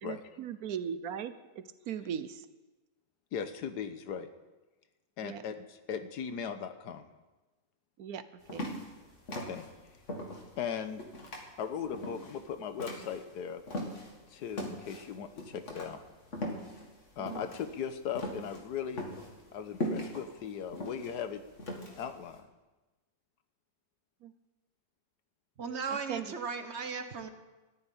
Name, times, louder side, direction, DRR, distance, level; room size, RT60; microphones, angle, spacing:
voice 1, 0.0-2.5 5.2-5.4 8.0-8.2 8.5-8.7 17.2-17.4 24.2-24.3 26.1-26.2, right 8 dB, 70° right, 12 dB, 1.1 m, -38 dB
voice 2, 3.3-4.3 5.2-7.1 9.4-9.6 10.6-11.0 11.6-13.6 14.3-16.0 17.2-19.0 19.5-21.4 22.0-22.5, left 7 dB, 85° left, 10 dB, 1.5 m, -38 dB
sound 1, 8.4-14.2 14.5-22.3, left 1 dB, 50° left, 2.2 m, -39 dB
voice 3, 25.6-27.3, right 5 dB, 50° right, 8 dB, 1.1 m, -36 dB
13.5 x 7.2 x 9.9 m, 1.2 s
omnidirectional pair, 1.7 m